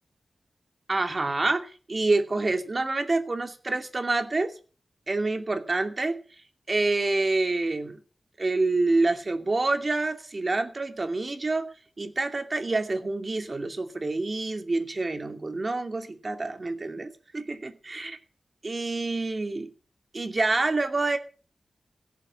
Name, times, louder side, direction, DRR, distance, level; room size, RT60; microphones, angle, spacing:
voice 1, 0.9-4.5 5.1-6.2 6.7-8.0 8.4-11.7 12.0-18.2 18.6-19.7 20.1-21.2, right 3 dB, 40° right, 2.5 m, -27 dB
17.0 x 7.0 x 8.6 m
wide cardioid pair, 80°, 0 cm